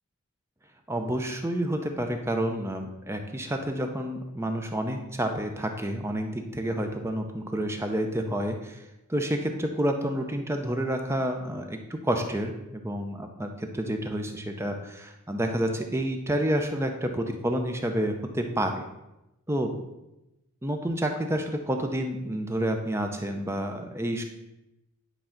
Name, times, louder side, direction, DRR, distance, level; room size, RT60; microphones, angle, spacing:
voice 1, 0.9-8.8 9.1-18.7 19.5-19.7 20.6-24.2, right 1 dB, 10° right, 4 dB, 0.6 m, -29 dB
10.0 x 3.8 x 5.8 m, 0.95 s
head